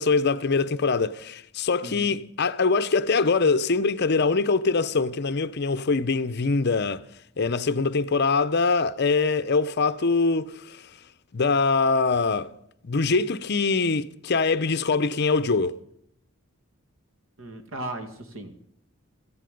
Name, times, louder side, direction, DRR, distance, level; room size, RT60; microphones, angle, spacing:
voice 1, 0.0-7.1 7.4-10.9 11.3-12.5 12.8-15.8, left 4 dB, 50° left, 0.6 m, -23 dB
voice 2, 17.4-18.6, right 1 dB, 65° right, 2.2 m, -36 dB
17.0 x 14.5 x 5.2 m
head